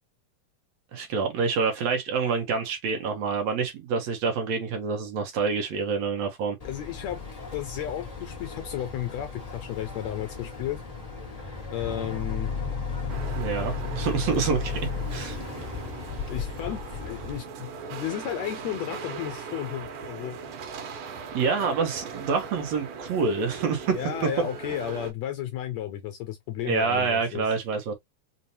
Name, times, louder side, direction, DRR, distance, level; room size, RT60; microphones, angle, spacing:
voice 1, 0.9-6.6 13.4-14.8 15.1-15.4 21.3-24.0 24.2-24.3 26.6-27.9, right 5 dB, 70° right, 1.9 m, -27 dB
voice 2, 6.6-7.2 7.5-10.8 11.7-12.5 14.3-14.4 16.3-20.4 23.9-27.5, left 11 dB, 75° left, 1.7 m, -33 dB
Boat Water vehicle, 6.6-17.4, left 5 dB, 55° left, 0.4 m, -35 dB
sound 1, 13.1-25.1, right 5 dB, 85° right, 2.6 m, -39 dB
5.4 x 2.1 x 2.8 m
omnidirectional pair, 3.6 m